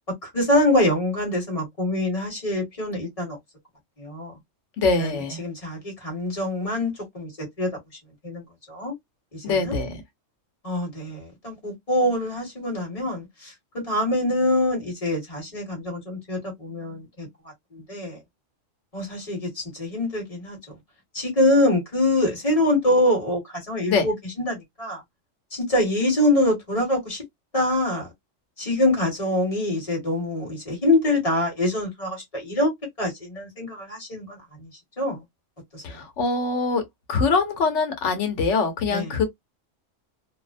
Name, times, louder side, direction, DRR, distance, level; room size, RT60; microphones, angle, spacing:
voice 1, 0.2-3.4 4.0-4.3 5.0-7.7 8.2-8.4 8.7-8.9 9.3-9.8 10.6-17.3 17.7-18.2 18.9-20.6 21.1-25.0 25.5-27.2 27.5-28.1 28.6-32.7 33.0-34.7 35.0-35.2 35.7-36.0 38.9-39.1, left 1 dB, 30° left, 1.4 m, -25 dB
voice 2, 4.8-5.4 9.4-9.9 23.9-24.1 35.8-36.8 37.1-39.2, left 4 dB, 70° left, 1.1 m, -23 dB
2.6 x 2.0 x 2.4 m
omnidirectional pair, 1.3 m